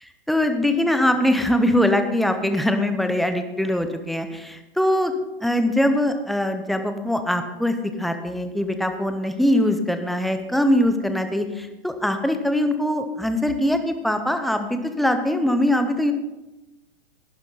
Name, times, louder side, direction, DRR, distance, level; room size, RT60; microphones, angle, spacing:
voice 1, 0.3-5.1 5.4-16.1, left 1 dB, ahead, 7 dB, 0.6 m, -22 dB
11.5 x 10.5 x 4.0 m, 1.0 s
hypercardioid pair, 125°, 31 cm